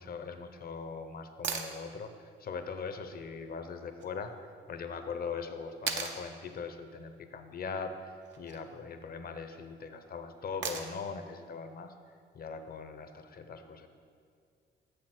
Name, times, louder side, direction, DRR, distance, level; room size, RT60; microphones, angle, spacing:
voice 1, 0.0-11.9 12.3-13.9, left 5 dB, 50° left, 8 dB, 0.8 m, -41 dB
sound 1, 1.4-1.7 4.0-4.1 5.9-6.2 8.2-8.6 10.6-11.1 13.2-13.3, right 6 dB, 65° right, 0.8 m, -36 dB
7.3 x 6.6 x 6.0 m, 2.2 s
cardioid pair, 90°, 20 cm